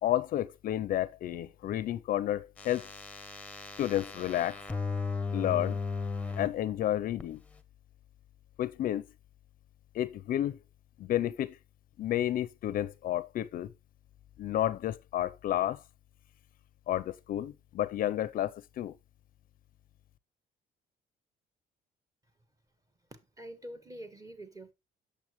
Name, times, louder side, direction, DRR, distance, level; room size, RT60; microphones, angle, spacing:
voice 1, 0.0-2.9 3.8-4.6 5.3-5.8 6.4-7.4 8.6-9.0 9.9-10.6 11.0-11.6 12.0-13.7 14.4-15.8 16.9-18.9, left 12 dB, 55° left, 0.5 m, -31 dB
sound 1, 2.6-6.5 7.2-7.3, left 4 dB, 10° left, 0.9 m, -36 dB
voice 2, 23.1-24.7, right 1 dB, 20° right, 1.6 m, -46 dB
8.6 x 6.9 x 3.0 m
cardioid pair, 110°, 17 cm